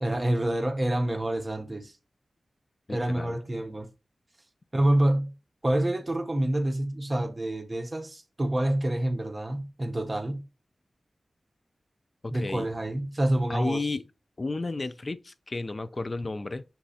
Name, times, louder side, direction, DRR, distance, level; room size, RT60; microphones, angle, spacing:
voice 1, 0.0-1.9 2.9-3.9 4.7-5.3 5.6-10.4 12.3-13.8, right 1 dB, 25° right, 0.8 m, -27 dB
voice 2, 2.9-3.4 12.2-12.7 13.5-14.0 14.4-16.6, left 3 dB, 40° left, 0.3 m, -32 dB
5.8 x 3.0 x 2.7 m
wide cardioid pair, 85°, 0 cm